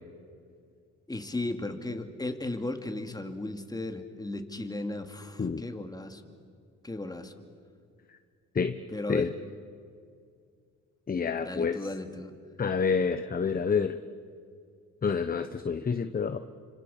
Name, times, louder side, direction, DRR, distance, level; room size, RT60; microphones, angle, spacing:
voice 1, 1.1-6.3 6.8-7.3 8.9-9.3 11.4-12.3, left 2 dB, 15° left, 6 dB, 2.6 m, -35 dB
voice 2, 11.1-11.8 12.6-14.0 15.0-16.4, left 5 dB, 30° left, 10 dB, 1.0 m, -28 dB
30.0 x 26.0 x 7.3 m, 2.2 s
cardioid pair, 90°, 30 cm